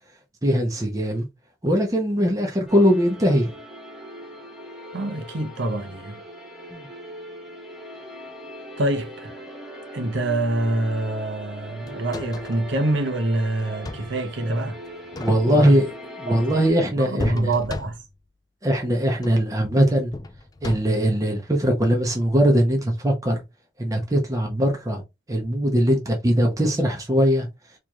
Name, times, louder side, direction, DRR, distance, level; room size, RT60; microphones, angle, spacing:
voice 1, 0.4-1.3 1.6-3.6 6.7-6.9 15.2-17.5 18.6-20.1 20.6-23.4 23.8-25.0 25.3-27.5, equal, 20° right, 0.8 m, -21 dB
sound 1, 2.7-16.7, equal, 5° right, 1.1 m, -40 dB
voice 2, 4.9-6.2 8.8-9.4 9.9-14.8 15.5-15.8 17.0-18.0, right 2 dB, 75° right, 0.9 m, -26 dB
sound 2, 11.9-12.7 13.6-14.2 15.0-15.7 17.2-18.2 19.1-19.5 20.1-21.1 22.8-22.9, left 2 dB, 20° left, 0.4 m, -34 dB
4.5 x 3.0 x 2.4 m
head